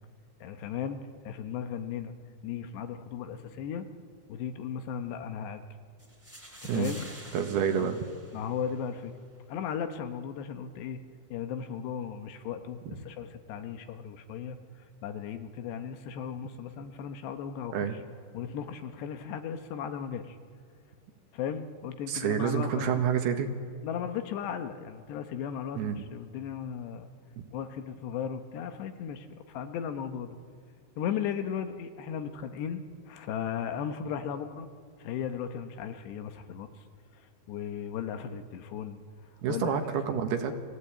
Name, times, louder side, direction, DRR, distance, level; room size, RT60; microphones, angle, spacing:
voice 1, 0.4-1.0 1.2-2.1 2.4-3.9 4.3-5.6 6.6-7.1 7.8-7.9 8.3-9.1 9.5-11.0 11.3-14.6 15.0-17.9 18.3-20.4 21.3-23.0 23.8-27.1 27.5-30.4 31.0-34.7 35.0-36.7 37.1-39.0 39.5-40.2, left 8 dB, 75° left, 7 dB, 3.2 m, -36 dB
sound 1, 6.0-9.0, right 1 dB, 5° right, 2.0 m, -49 dB
voice 2, 7.3-8.0 17.7-18.0 22.1-23.5 25.8-26.0 27.4-27.5 39.4-40.5, right 8 dB, 70° right, 5 dB, 3.3 m, -28 dB
29.5 x 20.0 x 8.7 m, 2.4 s
omnidirectional pair, 5.1 m